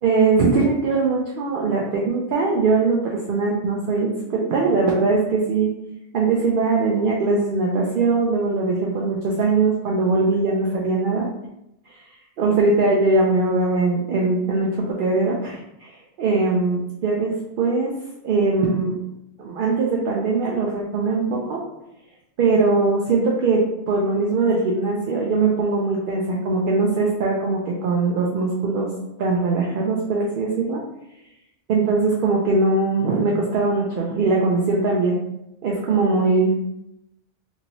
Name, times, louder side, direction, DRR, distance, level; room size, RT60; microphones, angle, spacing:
voice 1, 0.0-5.7 6.1-11.3 11.9-12.0 12.4-17.9 18.2-19.0 19.4-21.6 22.4-28.9 29.2-30.8 31.7-35.2 35.6-36.5, right 3 dB, 60° right, -2 dB, 0.6 m, -21 dB
2.9 x 2.6 x 2.9 m, 0.85 s
omnidirectional pair, 1.2 m